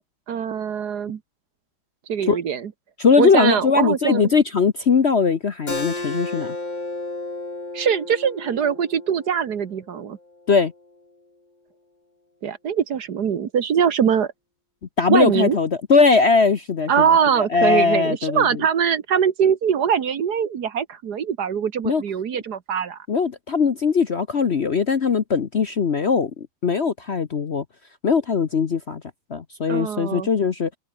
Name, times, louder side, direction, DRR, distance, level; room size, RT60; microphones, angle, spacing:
voice 1, 0.3-1.2 2.1-2.7 3.2-4.3 7.7-10.2 12.4-14.3 15.1-15.6 16.9-23.0 29.7-30.3, right 7 dB, 60° right, 1.7 m, -22 dB
voice 2, 3.0-6.6 10.5-10.7 15.0-18.6 21.8-22.0 23.1-27.6 28.0-29.0 29.3-30.7, left 5 dB, 45° left, 1.0 m, -20 dB
Keyboard (musical), 5.7-10.9, left 2 dB, 20° left, 3.1 m, -33 dB
omnidirectional pair, 2.1 m